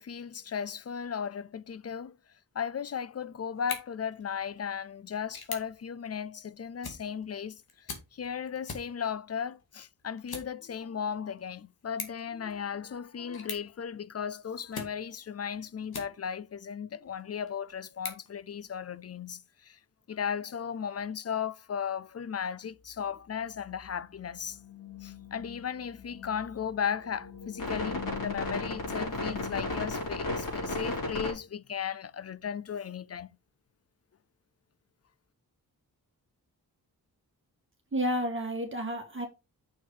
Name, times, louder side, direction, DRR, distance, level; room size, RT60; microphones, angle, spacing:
voice 1, 0.0-2.2 2.5-7.6 8.1-19.8 20.1-24.6 25.0-33.3, left 7 dB, 40° left, 0.5 m, -36 dB
sound 1, 3.5-16.5 17.0-19.1, left 4 dB, 80° left, 2.3 m, -46 dB
sound 2, 23.5-23.9 24.2-31.3, left 2 dB, 60° left, 4.5 m, -36 dB
voice 2, 37.9-39.3, equal, 35° right, 1.7 m, -31 dB
6.6 x 6.1 x 4.9 m
wide cardioid pair, 100°, 37 cm